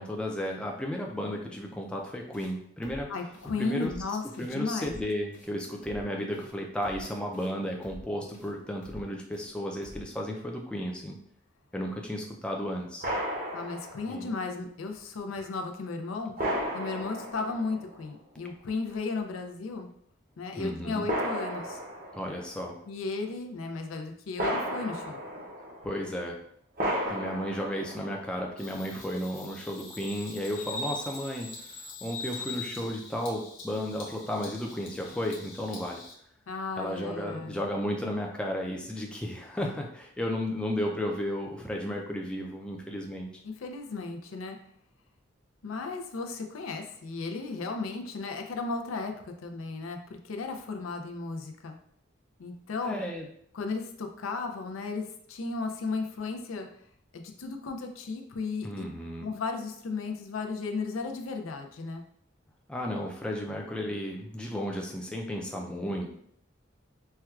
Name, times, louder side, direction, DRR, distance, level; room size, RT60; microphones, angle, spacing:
voice 1, 0.0-3.1 3.6-3.9 4.4-11.2 11.7-13.0 14.0-14.3 20.6-21.1 22.1-22.8 25.8-26.4 27.1-31.5 32.0-36.0 36.8-43.3 52.8-53.2 58.6-59.3 62.7-66.1, equal, 5° left, 0 dB, 0.3 m, -33 dB
sound 1, 2.3-2.5 2.8-3.0 3.3-3.5 3.8-4.0 4.3-4.5 4.8-5.0 5.3-5.5 5.8-6.0 6.3-6.5 6.8-7.0 7.3-7.5 7.8-8.0 8.3-8.5 8.8-9.0 9.3-9.5 9.8-10.0, equal, 40° left, 1.0 m, -47 dB
voice 2, 3.1-4.9 13.5-16.3 16.7-19.9 20.4-21.8 22.9-25.2 36.5-37.6 43.4-44.6 45.6-51.8 52.4-53.0 53.5-56.7 57.1-58.8 59.2-62.0, left 4 dB, 90° left, 4 dB, 0.4 m, -35 dB
sound 2, 13.0-14.2 15.4-15.5 16.4-18.1 18.9-19.0 21.1-22.5 24.4-26.0 26.8-28.3, equal, 45° right, 0.7 m, -34 dB
Bird vocalization bird call bird song, 28.6-36.1, left 3 dB, 65° left, 0.8 m, -42 dB
4.4 x 2.2 x 2.3 m, 0.67 s
head